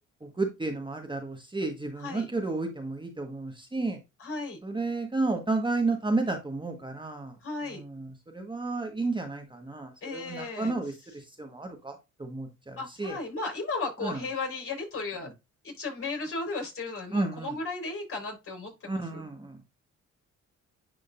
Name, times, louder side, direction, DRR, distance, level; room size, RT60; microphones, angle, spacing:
voice 1, 0.4-4.0 4.6-7.3 7.7-10.9 11.4-11.9 12.2-13.1 14.0-14.2 17.1-17.5 18.9-19.6, right 3 dB, 15° right, 1.4 m, -31 dB
voice 2, 2.0-2.3 4.2-4.6 7.4-7.8 10.0-11.1 12.8-15.3 15.6-19.2, left 3 dB, 45° left, 4.5 m, -35 dB
10.5 x 3.9 x 2.5 m
cardioid pair, 90°, 30 cm